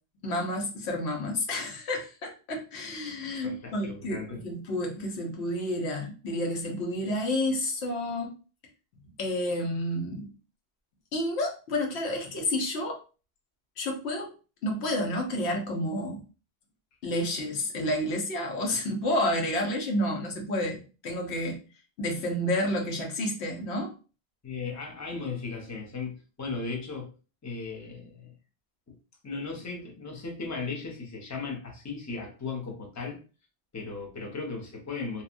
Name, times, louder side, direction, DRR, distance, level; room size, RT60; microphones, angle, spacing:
voice 1, 0.2-8.3 9.2-10.3 11.1-13.0 13.8-14.3 14.6-16.2 17.0-21.6 22.0-23.9, left 1 dB, 80° left, 1 dB, 1.0 m, -30 dB
voice 2, 3.4-4.4 24.4-27.1 27.4-28.3 28.9-29.0 29.2-33.2 33.7-35.2, left 4 dB, 20° left, 0 dB, 0.5 m, -36 dB
2.8 x 2.2 x 2.5 m, 0.34 s
omnidirectional pair, 1.1 m